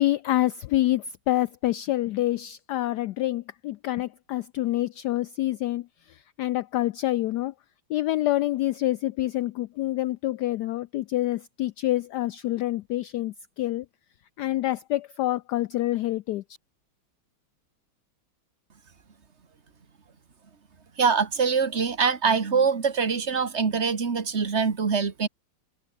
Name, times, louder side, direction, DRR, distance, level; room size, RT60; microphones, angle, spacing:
voice 1, 0.0-7.5 7.9-13.9 14.4-16.4, left 15 dB, 80° left, 0.9 m, -27 dB
voice 2, 21.0-25.3, right 5 dB, 35° right, 1.9 m, -24 dB
omnidirectional pair, 2.3 m